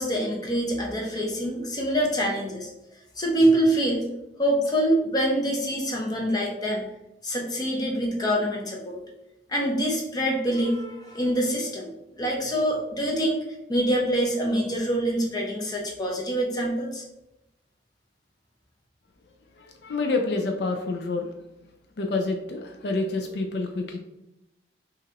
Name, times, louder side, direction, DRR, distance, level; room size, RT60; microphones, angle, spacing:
voice 1, 0.0-2.7 3.2-4.1 4.4-6.8 7.2-9.0 9.5-11.9 12.2-13.4 13.7-17.0, right 1 dB, 25° left, -2 dB, 0.9 m, -25 dB
voice 2, 19.6-21.3 22.0-24.0, left 3 dB, 65° left, 3 dB, 0.4 m, -28 dB
5.8 x 2.4 x 2.9 m, 0.91 s
head